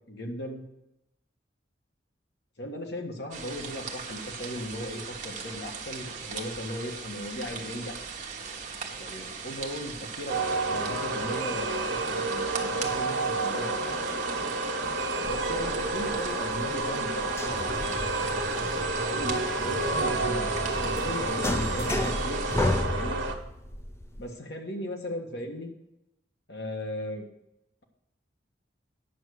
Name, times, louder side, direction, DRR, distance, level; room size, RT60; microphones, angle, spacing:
voice 1, 0.1-0.7 2.6-7.9 9.0-10.4 10.7-14.0 15.2-18.1 19.0-20.5 20.8-22.4 22.9-23.2 24.2-25.7 26.5-27.3, left 1 dB, 65° left, 2 dB, 1.6 m, -37 dB
sound 1, 3.3-22.8, right 5 dB, 45° right, 1.3 m, -39 dB
sound 2, 10.3-23.3, right 3 dB, 80° right, 1.2 m, -30 dB
sound 3, 15.2-24.3, left 1 dB, 15° left, 0.6 m, -33 dB
9.2 x 6.2 x 6.4 m, 0.88 s
head